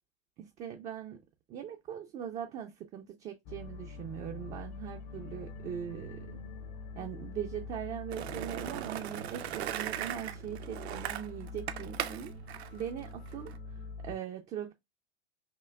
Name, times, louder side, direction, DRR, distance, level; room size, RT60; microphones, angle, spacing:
voice 1, 0.4-1.2 1.5-6.3 7.0-12.3 12.7-13.5 14.0-14.7, right 9 dB, 20° right, 0.4 m, -40 dB
sound 1, 3.5-14.2, left 3 dB, 45° left, 0.7 m, -45 dB
Skateboard, 8.1-13.6, right 11 dB, 70° right, 0.6 m, -39 dB
5.7 x 2.2 x 2.2 m
hypercardioid pair, 100°, 33 cm